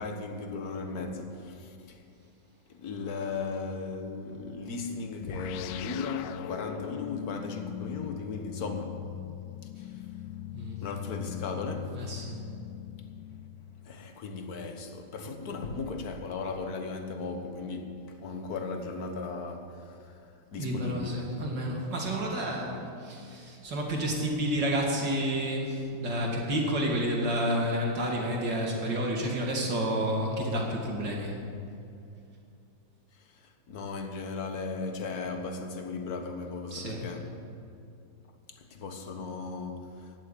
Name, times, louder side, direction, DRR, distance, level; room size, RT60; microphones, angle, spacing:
voice 1, 0.0-2.0 2.7-9.1 9.8-10.1 10.8-12.1 13.8-21.3 22.0-22.2 33.3-37.4 38.5-40.1, left 4 dB, 55° left, 1.7 m, -37 dB
sound 1, 5.2-14.0, left 13 dB, 75° left, 1.1 m, -40 dB
voice 2, 11.9-12.4 20.6-31.4 36.7-37.1, equal, 65° right, 3.0 m, -30 dB
16.0 x 7.4 x 10.0 m
omnidirectional pair, 2.1 m